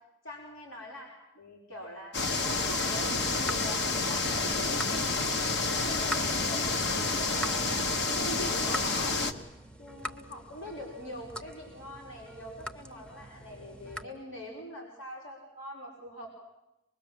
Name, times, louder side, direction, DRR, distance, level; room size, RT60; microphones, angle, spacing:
voice 1, 0.2-3.1 3.4-9.2 9.8-16.3, equal, 80° left, -2 dB, 4.8 m, -43 dB
sound 1, 2.1-9.3, left 3 dB, 60° left, 1.5 m, -29 dB
sound 2, 2.3-14.0, equal, 5° left, 0.9 m, -44 dB
24.5 x 21.5 x 7.7 m, 0.91 s
head